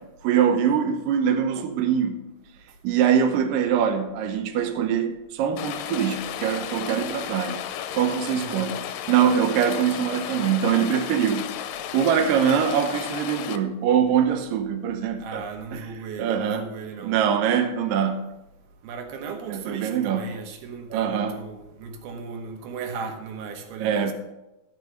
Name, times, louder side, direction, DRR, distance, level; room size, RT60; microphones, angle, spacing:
voice 1, 0.2-2.2 2.8-7.6 7.9-8.8 9.1-11.5 11.9-15.4 15.7-15.9 16.2-16.7 17.0-18.2 19.5-20.3 20.9-21.4 23.8-24.1, right 8 dB, 70° right, 2.4 m, -23 dB
Rain, 5.6-13.6, left 10 dB, 80° left, 2.1 m, -33 dB
voice 2, 8.4-8.8 15.2-17.2 18.8-24.1, right 5 dB, 85° right, 3.2 m, -36 dB
13.0 x 5.4 x 6.4 m
omnidirectional pair, 4.3 m